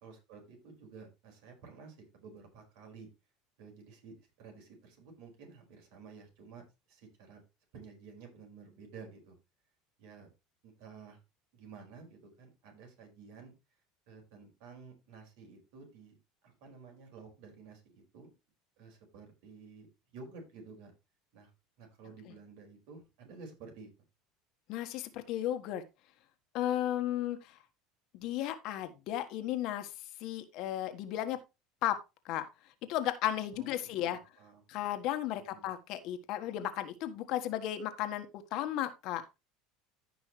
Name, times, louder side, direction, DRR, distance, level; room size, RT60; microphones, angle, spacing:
voice 1, 0.0-3.1 3.6-7.4 7.7-9.3 10.0-10.3 10.6-11.2 11.5-13.5 14.1-16.2 16.4-18.3 18.8-19.9 20.1-20.9 21.3-21.5 21.8-23.9 33.5-34.6 35.4-35.7, right 4 dB, 70° right, 2 dB, 4.9 m, -52 dB
voice 2, 24.7-25.8 26.5-27.6 28.1-29.9 30.2-31.4 31.8-32.0 32.2-32.4 32.9-34.2 34.7-39.2, left 12 dB, 60° left, 9 dB, 1.4 m, -34 dB
14.5 x 5.5 x 3.2 m, 0.25 s
supercardioid pair, 130°, 0 cm